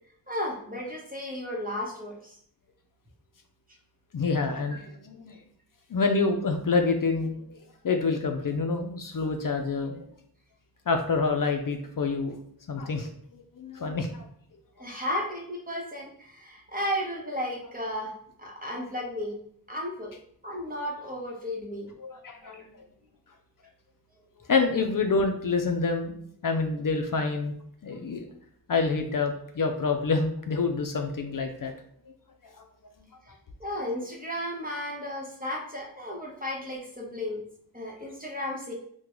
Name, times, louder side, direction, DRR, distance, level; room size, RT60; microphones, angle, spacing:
voice 1, 0.3-2.4 14.8-18.1 18.4-19.4 19.7-20.1 20.4-22.7 33.2-33.3 33.6-37.4 37.7-38.7, left 1 dB, 20° right, -2 dB, 1.0 m, -34 dB
voice 2, 4.1-5.4 5.9-7.3 7.8-10.0 10.9-12.4 12.7-14.3 22.0-22.6 24.5-26.1 26.4-27.5 27.8-28.3 28.7-31.7 32.4-32.7, left 4 dB, 60° left, 4 dB, 0.4 m, -27 dB
3.6 x 2.2 x 3.0 m, 0.65 s
wide cardioid pair, 40°, 39 cm